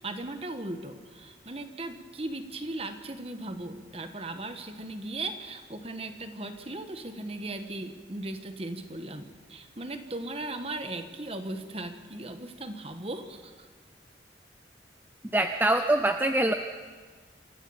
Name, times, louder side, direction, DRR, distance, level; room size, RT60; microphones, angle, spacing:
voice 1, 0.0-13.7, right 2 dB, 35° right, 7 dB, 1.5 m, -37 dB
voice 2, 15.3-16.5, right 1 dB, 10° right, 6 dB, 0.6 m, -24 dB
27.0 x 14.0 x 7.2 m, 1.6 s
head